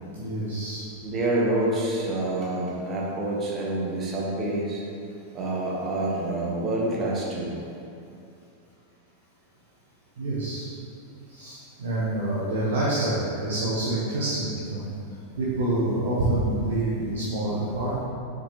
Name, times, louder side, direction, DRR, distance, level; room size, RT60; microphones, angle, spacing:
voice 1, 0.2-0.8 10.2-10.7 11.3-14.8 15.4-18.0, right 2 dB, 60° right, -9 dB, 1.1 m, -27 dB
voice 2, 1.0-4.8 5.3-7.5, right 2 dB, 25° right, -4 dB, 1.3 m, -27 dB
6.8 x 5.1 x 3.2 m, 2.6 s
figure-of-eight pair, 90°, 0 cm